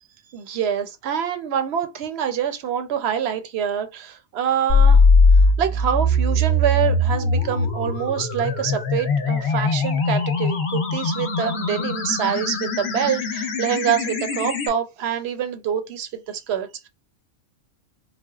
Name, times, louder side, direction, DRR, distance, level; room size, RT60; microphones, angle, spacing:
voice 1, 0.3-5.0 5.6-16.9, right 8 dB, 65° right, 0.7 m, -26 dB
sound 1, 4.7-14.7, left 3 dB, 60° left, 0.9 m, -20 dB
4.2 x 2.0 x 2.3 m
omnidirectional pair, 1.4 m